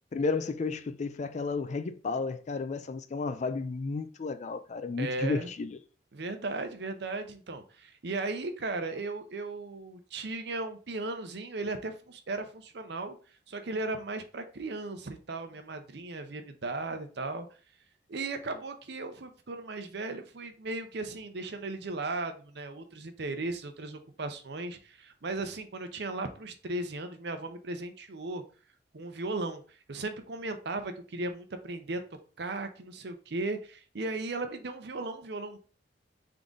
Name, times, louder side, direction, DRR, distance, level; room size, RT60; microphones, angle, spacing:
voice 1, 0.1-5.8, left 4 dB, 40° left, 0.4 m, -32 dB
voice 2, 5.0-5.5 6.1-13.2 13.5-17.5 18.1-28.4 28.9-32.0 32.4-35.6, right 2 dB, 65° right, 0.7 m, -36 dB
3.8 x 3.6 x 3.8 m
head